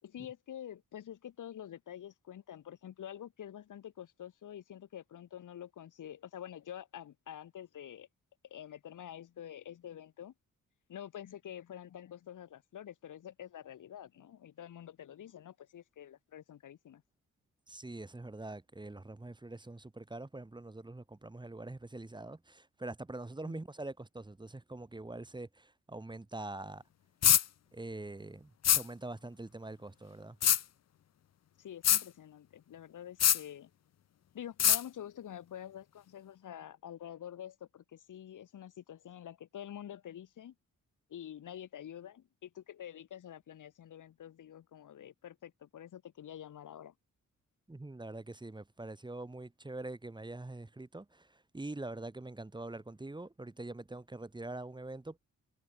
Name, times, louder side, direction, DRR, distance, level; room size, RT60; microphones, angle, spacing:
voice 1, 0.0-8.1 8.5-10.3 10.9-17.0 23.4-23.6 31.6-33.7 34.3-40.5 41.1-46.9, left 10 dB, 80° left, 7.0 m, -47 dB
voice 2, 17.7-26.8 27.7-30.4 47.7-55.2, right 2 dB, 15° right, 3.0 m, -44 dB
sound 1, 27.2-27.4 28.6-28.8 30.4-30.6 31.8-32.0 33.2-33.4 34.6-34.8, left 10 dB, 60° left, 0.9 m, -23 dB
cardioid pair, 115°, 30 cm